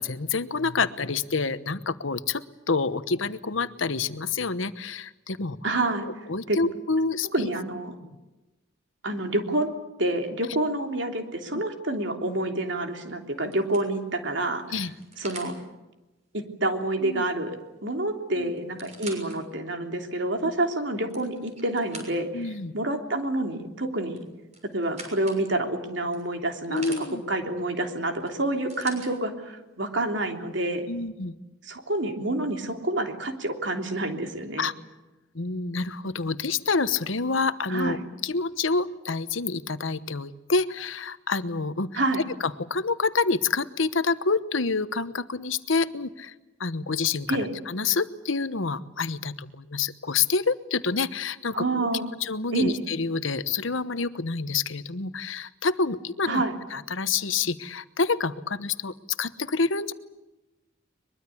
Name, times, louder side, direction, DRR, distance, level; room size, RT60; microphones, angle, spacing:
voice 1, 0.0-7.5 11.5-11.6 14.7-14.9 17.0-17.2 18.4-18.5 22.3-22.7 26.7-27.2 30.9-31.3 34.6-34.7 35.3-42.0 42.4-46.3 46.6-47.4 47.7-51.9 52.2-56.4 56.7-59.9, left 4 dB, 75° left, 13 dB, 1.1 m, -28 dB
voice 2, 5.6-6.1 6.5-6.6 7.3-7.9 9.0-9.7 10.0-14.6 15.2-15.5 16.3-22.4 22.7-24.2 24.7-30.9 31.7-34.7 37.7-38.0 41.9-42.2 47.3-47.5 51.5-52.1 52.5-52.8 56.3-56.5, right 2 dB, 65° right, 4 dB, 3.2 m, -28 dB
sound 1, 12.6-12.9 13.5-15.6 17.6-17.7 18.0-18.1 18.6-19.4 20.0-20.1 20.8-22.4 24.1-25.4 26.1-27.0 28.3-29.1 30.0-30.1, right 3 dB, 35° right, 6.4 m, -44 dB
23.0 x 22.5 x 8.6 m, 1.1 s
head